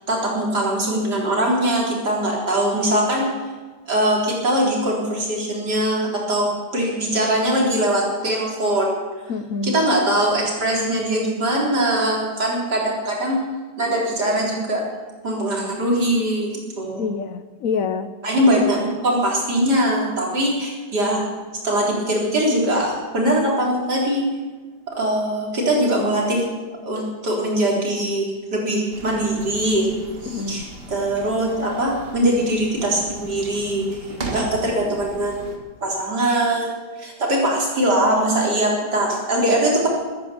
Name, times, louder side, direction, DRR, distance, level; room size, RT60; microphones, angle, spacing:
voice 1, 0.1-3.2 3.9-6.5 6.7-8.9 9.6-13.4 13.8-14.8 15.2-17.1 18.2-21.2 21.6-24.2 24.9-26.5 26.8-29.9 30.2-35.6 35.8-36.7 37.0-39.9, right 1 dB, 85° right, -3 dB, 4.5 m, -21 dB
voice 2, 9.3-9.7 17.0-18.1 30.3-30.6 34.4-34.5, left 5 dB, 60° left, 11 dB, 1.1 m, -26 dB
sound 1, 28.9-35.6, right 2 dB, 35° right, 1.9 m, -37 dB
14.0 x 13.0 x 7.0 m, 1.3 s
omnidirectional pair, 1.7 m